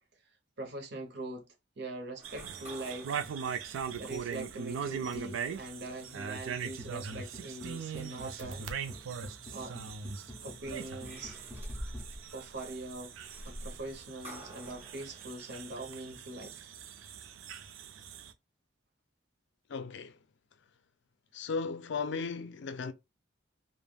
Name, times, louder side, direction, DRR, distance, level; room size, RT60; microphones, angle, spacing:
voice 1, 0.6-1.5 1.8-3.2 4.0-8.7 9.5-9.8 10.4-11.4 12.3-13.1 13.4-16.7, right 2 dB, 55° right, 0.8 m, -42 dB
sound 1, 2.2-4.7 5.3-5.4 8.0-9.0 10.4-16.2, equal, 30° right, 1.4 m, -49 dB
sound 2, 2.2-18.3, right 6 dB, 85° right, 0.4 m, -41 dB
sound 3, 6.8-12.1, left 1 dB, 10° left, 0.6 m, -50 dB
voice 2, 19.7-20.2 21.3-22.9, left 4 dB, 60° left, 0.4 m, -36 dB
3.3 x 2.0 x 2.2 m
head